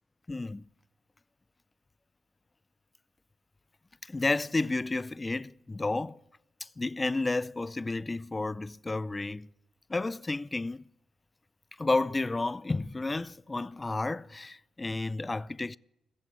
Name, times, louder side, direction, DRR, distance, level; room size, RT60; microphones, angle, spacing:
voice 1, 0.3-0.6 4.0-6.2 6.6-9.5 9.9-10.9 11.8-15.8, left 2 dB, 25° left, 0.4 m, -31 dB
21.0 x 7.1 x 8.1 m
hypercardioid pair, 45°, 0 cm